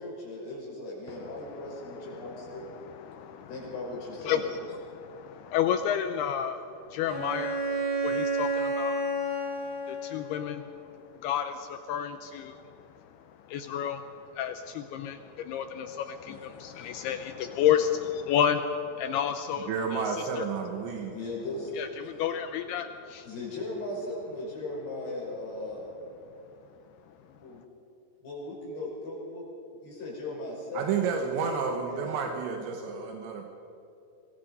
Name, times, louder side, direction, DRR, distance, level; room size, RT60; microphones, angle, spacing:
voice 1, 0.0-2.8 3.5-4.5 16.3-16.4 16.7-16.9 21.1-21.7 23.2-25.9 27.4-27.6 28.2-29.4 29.8-32.9, left 2 dB, 65° left, -4 dB, 7.5 m, -38 dB
voice 2, 1.1-3.6 4.3-4.4 4.7-9.0 9.9-20.5 21.8-23.3, left 9 dB, 80° left, 8 dB, 2.4 m, -31 dB
Bowed string instrument, 7.1-10.6, right 2 dB, 30° right, 6.2 m, -30 dB
voice 3, 19.7-21.2 30.7-33.5, right 6 dB, 80° right, 3 dB, 3.5 m, -31 dB
24.5 x 20.5 x 5.4 m, 2.8 s
omnidirectional pair, 5.2 m